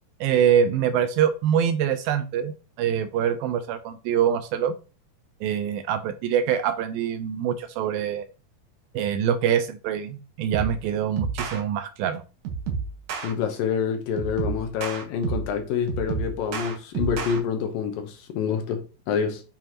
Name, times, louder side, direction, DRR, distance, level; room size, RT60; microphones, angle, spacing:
voice 1, 0.2-4.7 5.4-8.3 8.9-12.2, right 9 dB, 80° right, 2.2 m, -24 dB
sound 1, 10.5-10.8 11.2-11.6 12.4-13.3 14.2-15.5 15.9-17.4, right 6 dB, 65° right, 2.2 m, -30 dB
voice 2, 13.2-19.4, left 7 dB, 70° left, 2.3 m, -27 dB
9.1 x 5.7 x 2.9 m
omnidirectional pair, 4.8 m